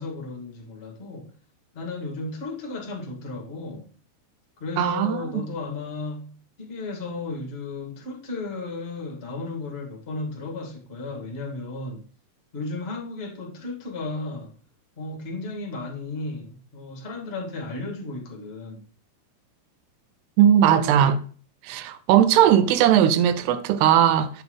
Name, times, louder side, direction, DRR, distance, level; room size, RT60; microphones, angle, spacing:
voice 1, 0.0-1.3 1.7-3.9 4.6-12.0 12.5-14.5 15.0-18.8, left 3 dB, 30° left, 1.1 m, -34 dB
voice 2, 4.8-5.4 20.4-21.2 21.7-24.3, right 10 dB, 90° right, 2.9 m, -18 dB
8.4 x 6.3 x 3.9 m
omnidirectional pair, 4.5 m